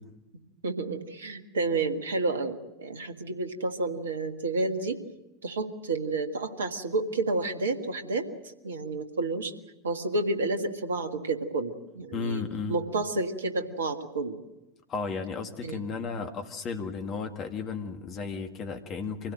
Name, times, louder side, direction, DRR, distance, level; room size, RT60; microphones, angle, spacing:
voice 1, 0.6-5.0 5.4-8.3 8.6-9.5 9.8-12.4 12.7-14.4 15.6-15.8, right 3 dB, 75° right, 7 dB, 1.7 m, -30 dB
voice 2, 12.1-12.8 14.9-19.3, left 5 dB, 35° left, 5 dB, 1.8 m, -34 dB
25.0 x 16.5 x 7.7 m, 0.97 s
figure-of-eight pair, 80°, 0 cm